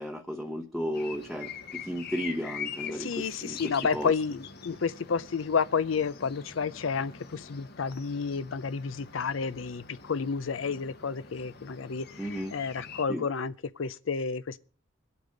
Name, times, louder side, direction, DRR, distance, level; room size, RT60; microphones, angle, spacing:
voice 1, 0.0-4.1 12.2-12.5 13.1-13.3, equal, ahead, 0.8 m, -34 dB
sound 1, 0.9-13.1, left 6 dB, 55° left, 1.2 m, -44 dB
voice 2, 2.9-14.6, left 5 dB, 85° left, 0.6 m, -31 dB
24.0 x 8.5 x 3.9 m
head